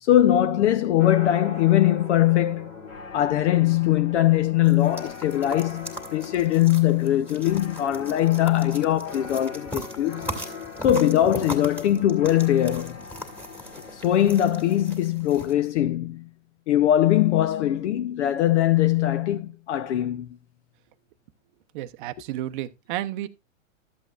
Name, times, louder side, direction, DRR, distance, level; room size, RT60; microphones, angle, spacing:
voice 1, 0.0-2.7 3.1-10.4 10.8-13.0 13.9-16.3 16.7-20.3, left 12 dB, 55° left, 0.7 m, -21 dB
sound 1, 1.0-14.9, left 4 dB, 85° left, 2.9 m, -41 dB
sound 2, 4.6-15.5, right 1 dB, 5° left, 2.1 m, -39 dB
voice 2, 21.7-23.3, right 14 dB, 40° right, 0.7 m, -32 dB
13.0 x 8.0 x 2.4 m
hypercardioid pair, 125°, 41 cm